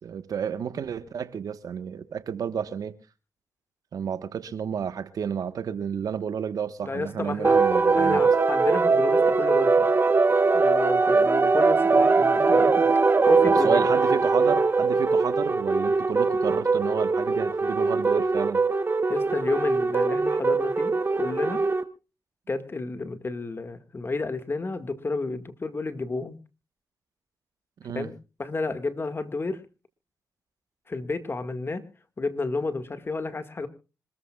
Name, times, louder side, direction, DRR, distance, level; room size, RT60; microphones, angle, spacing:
voice 1, 0.0-2.9 3.9-8.2 13.6-18.6 27.8-28.1, right 7 dB, 75° right, 1.4 m, -31 dB
voice 2, 6.8-7.6 8.0-9.9 10.5-13.8 19.1-21.6 22.5-26.4 27.9-28.1 28.4-29.6 30.9-31.9 32.2-33.7, left 3 dB, 40° left, 2.0 m, -31 dB
sound 1, 7.4-21.8, right 4 dB, 35° right, 1.3 m, -21 dB
26.0 x 14.0 x 2.4 m
cardioid pair, 60°, 6 cm